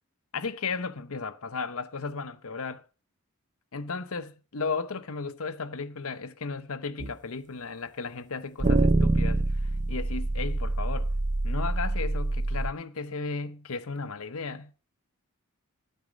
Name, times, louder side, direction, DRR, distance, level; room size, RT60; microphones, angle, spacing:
voice 1, 0.3-2.8 3.7-9.6 9.9-11.1 11.4-14.7, left 4 dB, 75° left, 0.8 m, -35 dB
sound 1, 7.0-7.1 8.6-12.7, right 2 dB, 35° right, 0.6 m, -26 dB
9.4 x 9.2 x 5.1 m
head